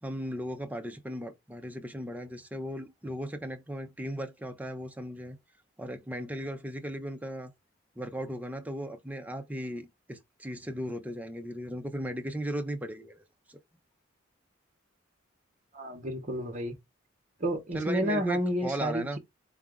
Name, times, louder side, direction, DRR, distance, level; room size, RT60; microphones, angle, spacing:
voice 1, 0.0-5.4 5.8-7.5 8.0-13.6 17.7-19.2, equal, 10° right, 0.5 m, -37 dB
voice 2, 15.7-16.7 17.4-19.2, equal, 40° right, 0.8 m, -30 dB
3.9 x 2.4 x 3.5 m
head